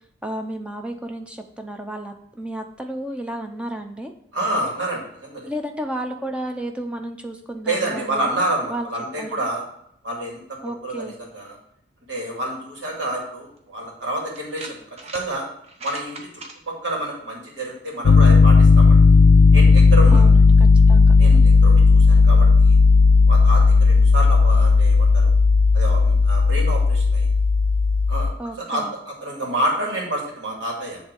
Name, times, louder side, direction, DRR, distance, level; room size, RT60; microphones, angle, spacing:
voice 1, 0.2-4.1 5.5-8.3 8.7-8.9 9.2-9.4 10.6-11.2 20.1-21.2 28.4-28.9, right 1 dB, 5° right, 5 dB, 0.6 m, -32 dB
voice 2, 4.3-5.4 7.6-9.6 10.0-11.6 12.1-14.8 15.1-15.4 15.8-16.2 16.7-19.0 19.5-20.2 21.2-22.7 23.3-25.3 25.7-27.3 28.1-28.3 28.6-31.0, right 1 dB, 75° right, -2 dB, 2.4 m, -28 dB
sound 1, 13.6-13.7 14.3-15.3 15.6-16.5, right 2 dB, 35° right, 0.9 m, -38 dB
Piano, 18.0-28.3, left 4 dB, 65° left, 0.3 m, -13 dB
7.8 x 3.5 x 6.4 m, 0.71 s
head